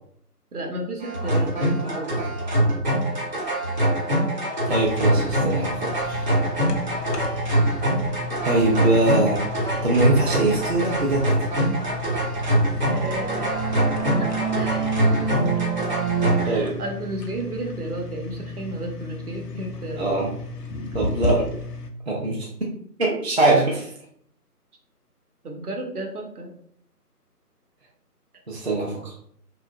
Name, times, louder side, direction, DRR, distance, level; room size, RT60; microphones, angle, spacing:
voice 1, 0.5-2.2 12.9-13.6 14.2-15.0 16.4-20.1 25.4-26.5, right 1 dB, 65° right, 1 dB, 0.9 m, -33 dB
sound 1, 1.0-16.5, right 1 dB, 30° right, 0.9 m, -23 dB
sound 2, 4.7-21.9, left 2 dB, 85° left, 0.6 m, -34 dB
voice 2, 4.7-6.3 8.4-9.5 9.8-11.5 16.5-16.8 20.0-20.3 20.9-21.5 22.1-22.5 23.0-23.9 28.5-29.2, right 2 dB, 45° right, -4 dB, 0.5 m, -22 dB
2.9 x 2.4 x 2.3 m, 0.66 s
figure-of-eight pair, 155°, 47 cm